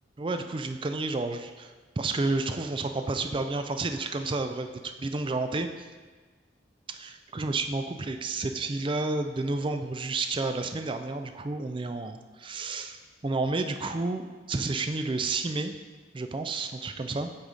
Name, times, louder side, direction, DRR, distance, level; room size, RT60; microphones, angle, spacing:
voice 1, 0.2-5.9 6.9-15.7 16.1-17.3, right 3 dB, 25° right, 7 dB, 0.4 m, -31 dB
7.8 x 4.1 x 5.0 m, 1.4 s
head